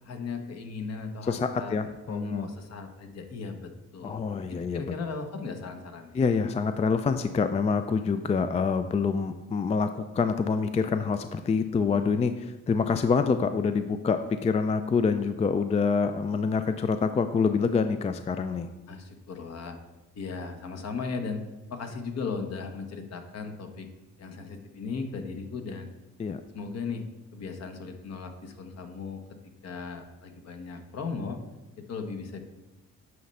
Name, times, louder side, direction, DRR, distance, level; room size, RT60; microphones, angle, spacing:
voice 1, 0.0-1.8 2.1-4.2 4.5-6.2 18.9-19.8 20.1-21.4 21.7-23.9 24.2-25.9 26.5-27.0 27.3-29.2 29.6-31.4 31.8-32.4, left 4 dB, 60° left, 5 dB, 1.1 m, -37 dB
voice 2, 1.2-2.5 4.0-4.8 6.1-18.7 26.2-26.4, left 5 dB, 20° left, 9 dB, 0.3 m, -26 dB
9.5 x 3.2 x 5.4 m, 1.1 s
cardioid pair, 90°, 30 cm